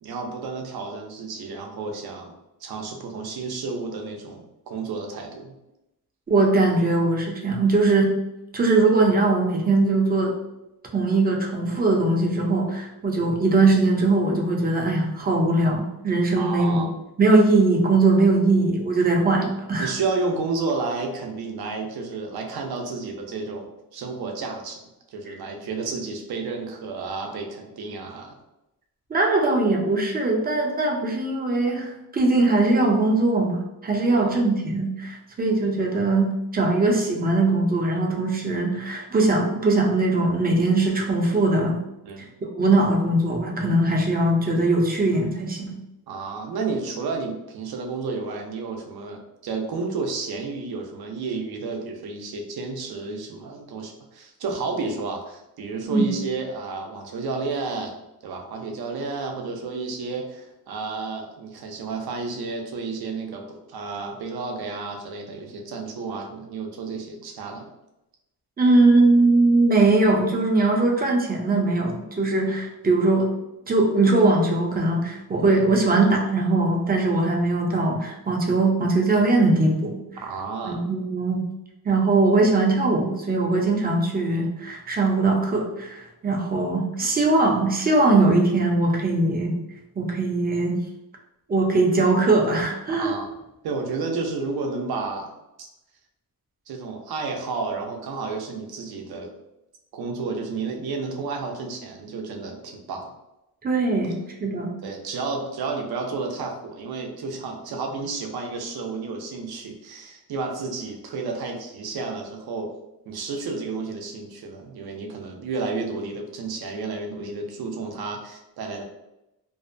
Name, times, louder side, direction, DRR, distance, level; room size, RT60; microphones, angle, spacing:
voice 1, 0.0-2.3 2.6-5.5 16.4-16.9 19.8-24.8 25.1-28.4 34.1-34.4 42.0-42.3 46.1-58.0 58.2-67.7 80.2-80.8 92.9-93.3 93.6-95.3 95.6-95.7 96.7-99.3 99.9-103.1 104.8-112.7 113.1-118.8, right 4 dB, 70° right, 2 dB, 0.6 m, -31 dB
voice 2, 6.3-8.1 8.5-10.3 10.9-16.9 17.2-19.9 29.1-41.8 42.6-45.8 55.8-56.1 68.6-73.3 73.7-80.0 80.6-81.4 81.8-89.6 90.0-90.8 91.5-93.1 103.6-104.8, right 2 dB, 25° right, 0 dB, 0.5 m, -21 dB
2.6 x 2.1 x 2.5 m, 0.92 s
wide cardioid pair, 130°, 39 cm